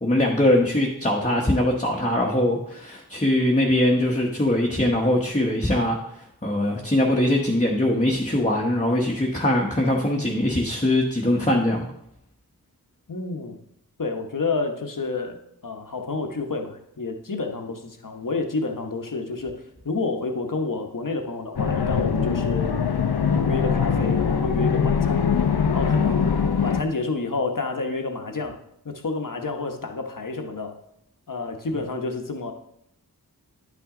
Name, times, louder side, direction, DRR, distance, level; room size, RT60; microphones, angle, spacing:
voice 1, 0.0-6.0 6.4-11.9, left 1 dB, 20° left, -1 dB, 1.0 m, -22 dB
voice 2, 13.1-13.6 14.0-15.4 15.6-22.8 23.4-25.2 25.7-26.3 26.6-28.6 28.8-30.7 31.3-32.5, left 3 dB, 55° left, 4 dB, 1.0 m, -29 dB
sound 1, 21.6-26.8, left 6 dB, 75° left, 0.7 m, -22 dB
10.0 x 5.9 x 3.7 m, 0.78 s
wide cardioid pair, 45°, 38 cm